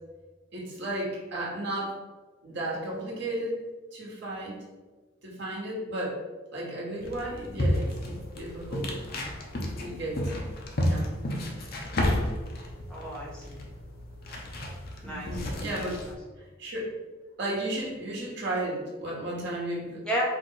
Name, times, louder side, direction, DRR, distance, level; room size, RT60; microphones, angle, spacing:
voice 1, 0.5-1.9 2.4-3.6 3.9-4.6 5.2-6.2 6.5-8.9 9.8-10.3 10.8-11.1 15.0-16.0 16.6-16.9 17.4-20.0, right 1 dB, 60° right, -4 dB, 1.5 m, -34 dB
sound 1, 7.0-16.1, left 1 dB, 50° left, 0.7 m, -32 dB
voice 2, 12.9-13.6 15.0-16.1 20.0-20.2, equal, 5° left, -6 dB, 1.1 m, -34 dB
4.7 x 2.6 x 3.9 m, 1.2 s
head